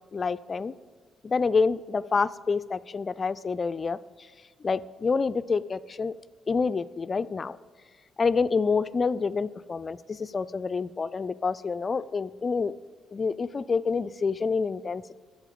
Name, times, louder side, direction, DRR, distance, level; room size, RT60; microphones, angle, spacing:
voice 1, 0.1-0.7 1.2-4.0 4.6-6.1 6.5-7.6 8.2-12.7 13.1-15.2, left 4 dB, 40° left, 16 dB, 0.3 m, -27 dB
8.3 x 7.2 x 5.2 m, 1.5 s
hypercardioid pair, 45°, 0 cm